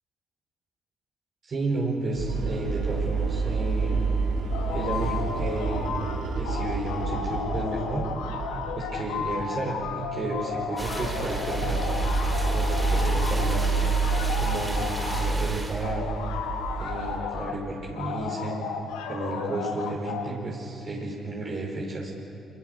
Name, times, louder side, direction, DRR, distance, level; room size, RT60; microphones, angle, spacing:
voice 1, 1.5-4.1 4.7-6.1 6.4-8.1 8.8-11.9 12.5-13.8 14.4-16.1 16.8-18.6 19.1-22.1, right 2 dB, 55° right, -2 dB, 5.2 m, -32 dB
sound 1, 2.1-8.9 9.2-9.5 9.8-10.0 10.4-17.2, right 4 dB, 75° right, 5.1 m, -28 dB
sound 2, 4.5-6.2 6.4-15.3 15.8-17.6 18.0-20.3, left 6 dB, 85° left, 1.9 m, -33 dB
sound 3, 10.8-15.9, right 1 dB, 15° right, 5.7 m, -36 dB
25.5 x 22.5 x 6.8 m, 2.7 s
hypercardioid pair, 50°, 0 cm